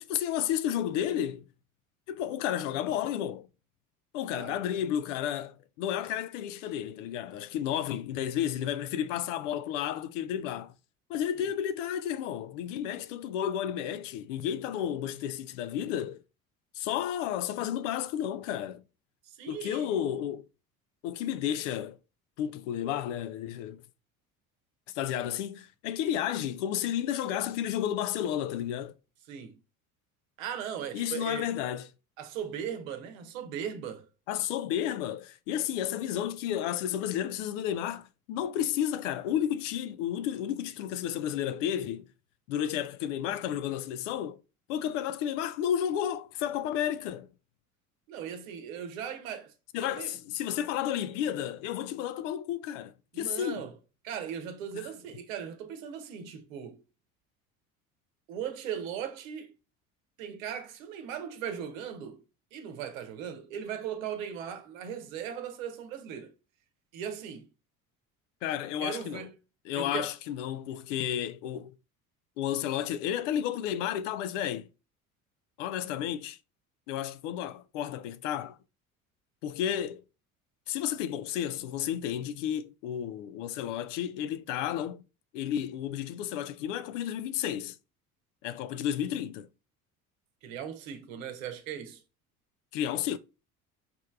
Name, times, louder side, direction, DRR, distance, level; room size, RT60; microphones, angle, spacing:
voice 1, 0.0-1.4 2.1-3.5 4.1-10.7 11.1-16.2 16.7-18.8 19.5-20.5 21.0-22.0 22.4-23.8 24.9-28.9 30.9-31.9 34.3-42.1 42.5-44.4 44.7-47.3 49.7-53.7 54.7-54.9 68.4-69.3 69.7-71.7 72.4-74.7 75.6-76.4 76.9-78.6 79.4-80.0 80.7-85.0 85.3-87.8 88.4-89.5 92.7-93.2, left 10 dB, 60° left, 0.5 m, -32 dB
voice 2, 4.3-4.8 7.7-7.9 19.3-20.0 29.3-29.6 30.4-31.5 32.2-34.0 48.1-49.5 49.8-50.1 53.1-53.7 54.0-56.8 58.3-59.5 60.2-62.2 62.5-66.3 66.9-67.5 68.8-69.3 69.7-70.1 90.4-92.0, right 8 dB, 65° right, 0.9 m, -38 dB
5.1 x 3.2 x 2.2 m
figure-of-eight pair, 60°, 43 cm